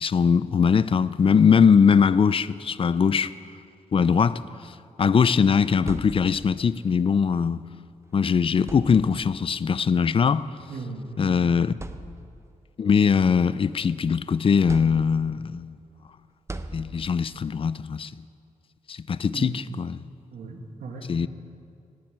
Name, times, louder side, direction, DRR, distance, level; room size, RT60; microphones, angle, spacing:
voice 1, 0.0-3.3 3.9-4.4 5.0-7.6 8.1-10.5 11.2-11.7 12.8-15.8 16.7-18.1 18.9-20.0 21.1-21.3, left 6 dB, 40° left, 0.4 m, -21 dB
sound 1, 5.9-6.7 7.9-8.1 8.6-9.4 10.5-10.7 11.2-11.3 11.7-12.6 13.1-14.1 14.7-15.5 16.5-17.4, right 2 dB, 20° right, 0.7 m, -40 dB
voice 2, 10.7-11.6 19.3-19.8 20.3-21.1, right 3 dB, 90° right, 2.0 m, -37 dB
18.0 x 7.6 x 9.7 m
wide cardioid pair, 110°, 14 cm